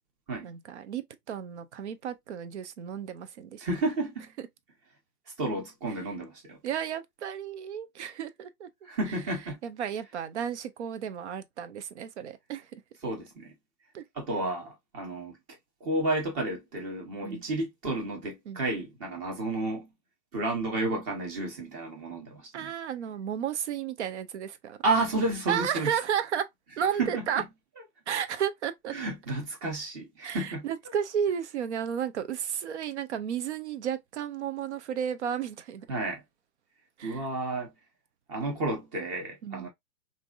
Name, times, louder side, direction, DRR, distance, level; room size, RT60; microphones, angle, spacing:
voice 1, 0.4-3.7 6.6-8.7 9.6-12.8 13.9-14.0 17.2-17.4 18.5-18.6 22.5-24.8 25.5-26.5 26.8-27.4 28.1-28.9 30.2-35.9 37.0-37.2 39.4-39.7, right 8 dB, 45° right, 0.6 m, -33 dB
voice 2, 3.6-4.3 5.4-6.6 8.8-9.6 13.0-13.5 14.1-15.4 15.8-19.9 20.3-22.7 24.8-25.9 27.0-27.4 28.9-30.7 35.9-36.2 37.0-37.7 38.3-39.7, right 2 dB, 25° right, 1.2 m, -31 dB
3.3 x 2.6 x 2.3 m
hypercardioid pair, 145°, 48 cm